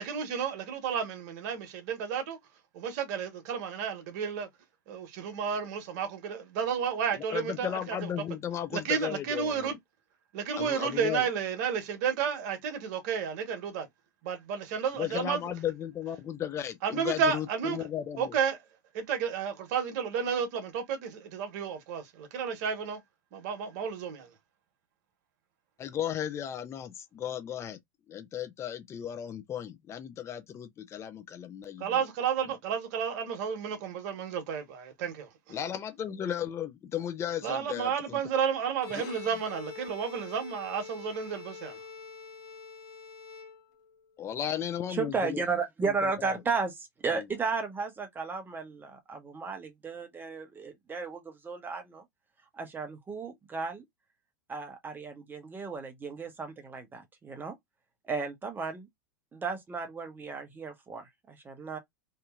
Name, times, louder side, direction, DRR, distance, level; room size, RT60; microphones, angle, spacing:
voice 1, 0.0-2.4 2.7-4.5 4.9-8.1 8.7-9.8 10.3-13.9 14.2-15.4 16.8-17.8 18.2-18.6 18.9-23.0 23.3-24.3 31.8-35.6 37.4-41.8, right 7 dB, 55° right, 1.1 m, -32 dB
voice 2, 7.3-9.7 10.6-11.3 14.9-18.4 25.8-27.8 28.1-32.0 35.5-38.2 44.2-45.4 46.0-46.4 47.1-47.2, left 10 dB, 25° left, 0.5 m, -35 dB
Bowed string instrument, 38.7-44.0, left 5 dB, 45° left, 1.0 m, -45 dB
voice 3, 44.9-52.0 52.6-53.8 54.5-57.5 58.1-58.9 59.3-61.8, right 4 dB, 20° right, 0.8 m, -34 dB
2.8 x 2.6 x 2.3 m
hypercardioid pair, 100°, 11 cm